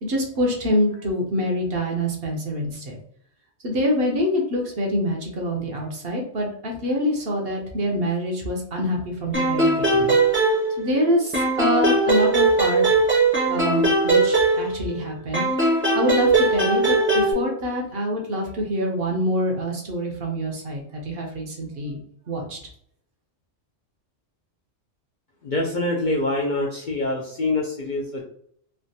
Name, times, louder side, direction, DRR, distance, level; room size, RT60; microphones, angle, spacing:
voice 1, 0.0-3.0 3.6-13.0 13.5-15.4 15.9-22.0 22.3-22.6, equal, 60° right, 1 dB, 0.9 m, -26 dB
sound 1, 9.3-11.0 11.3-15.0 15.3-17.3, right 2 dB, 15° right, 0.5 m, -20 dB
voice 2, 25.4-28.2, left 2 dB, 55° left, -1 dB, 0.5 m, -25 dB
3.3 x 2.2 x 2.7 m, 0.66 s
omnidirectional pair, 1.2 m